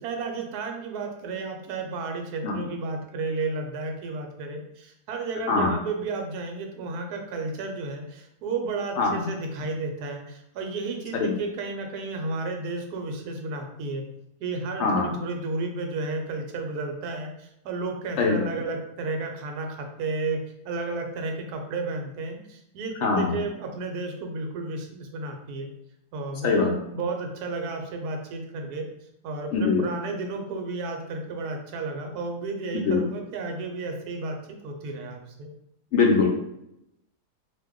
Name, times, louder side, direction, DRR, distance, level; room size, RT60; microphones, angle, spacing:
voice 1, 0.0-14.0 14.4-20.4 20.6-25.7 26.1-28.9 29.2-35.5, right 3 dB, 75° right, 3 dB, 1.1 m, -32 dB
voice 2, 23.0-23.4 26.4-26.7 29.5-29.8 32.8-33.0 35.9-36.3, left 4 dB, 70° left, 1 dB, 0.7 m, -22 dB
2.6 x 2.1 x 3.5 m, 0.81 s
omnidirectional pair, 1.7 m